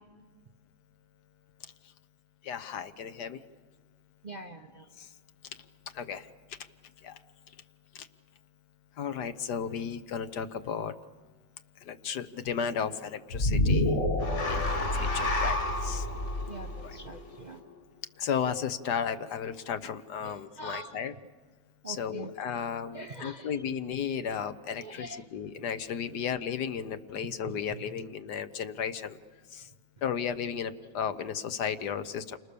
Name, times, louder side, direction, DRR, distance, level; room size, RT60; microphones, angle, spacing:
voice 1, 2.4-3.4 5.9-6.3 7.0-7.2 9.0-10.9 11.9-13.9 14.5-16.0 16.8-16.9 18.2-21.1 21.9-29.2 29.5-29.7 30.0-32.4, left 7 dB, 70° left, 11 dB, 1.5 m, -34 dB
voice 2, 4.2-4.9 16.5-17.6 20.2-21.0 21.8-22.3 22.9-23.5 24.8-25.2 27.5-28.0, right 2 dB, 40° right, 4 dB, 0.7 m, -44 dB
sound 1, 13.3-17.7, left 1 dB, 40° left, 2.0 m, -28 dB
29.5 x 25.5 x 6.9 m, 1.5 s
omnidirectional pair, 1.9 m